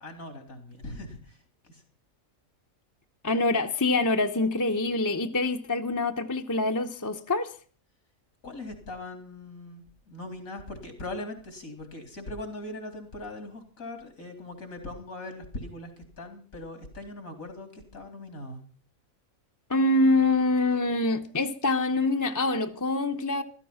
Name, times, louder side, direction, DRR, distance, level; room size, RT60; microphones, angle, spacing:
voice 1, 0.0-1.8 8.4-18.6, left 2 dB, 85° left, 4.2 m, -40 dB
voice 2, 3.2-7.5 19.7-23.4, left 2 dB, 15° left, 0.8 m, -25 dB
14.5 x 14.0 x 5.8 m
omnidirectional pair, 1.4 m